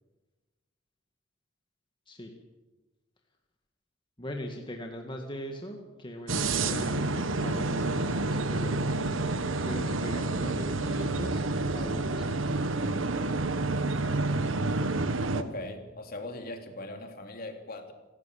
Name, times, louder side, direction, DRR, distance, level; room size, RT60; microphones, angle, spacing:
voice 1, 4.2-7.1 7.4-8.9 9.7-11.5 11.7-12.4, equal, 25° left, 2.0 m, -40 dB
sound 1, 6.3-15.4, right 2 dB, 90° right, 1.5 m, -29 dB
voice 2, 15.3-17.9, left 2 dB, 50° left, 3.0 m, -40 dB
28.0 x 13.5 x 8.6 m
head